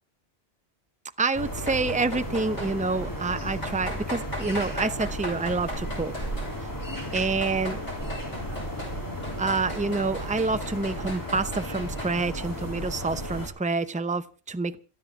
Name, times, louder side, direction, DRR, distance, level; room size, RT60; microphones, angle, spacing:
voice 1, 1.2-6.1 7.1-7.8 9.4-14.8, right 3 dB, 10° right, 11 dB, 0.6 m, -27 dB
sound 1, 1.3-13.5, equal, 20° left, 3.3 m, -34 dB
sound 2, 1.5-2.7 3.6-6.6 7.2-9.0 9.2-12.3, equal, 40° left, 8.1 m, -38 dB
27.5 x 10.0 x 3.7 m, 0.38 s
omnidirectional pair, 1.1 m